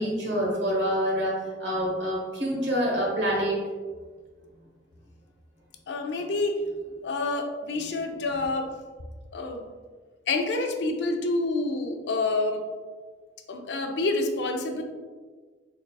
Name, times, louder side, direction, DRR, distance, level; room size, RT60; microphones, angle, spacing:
voice 1, 0.0-3.6, equal, 65° right, -3 dB, 1.2 m, -26 dB
voice 2, 5.9-6.6 7.0-8.7 9.3-9.7 10.3-12.6 13.5-14.8, left 2 dB, 65° left, 4 dB, 0.4 m, -28 dB
3.9 x 3.6 x 2.2 m, 1.5 s
head